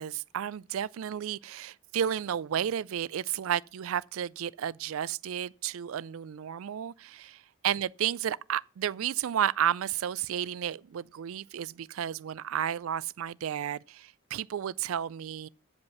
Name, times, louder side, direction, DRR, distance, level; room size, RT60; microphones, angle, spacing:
voice 1, 0.0-7.4 7.6-15.5, right 9 dB, 75° right, 0.4 m, -32 dB
9.4 x 5.2 x 7.0 m
head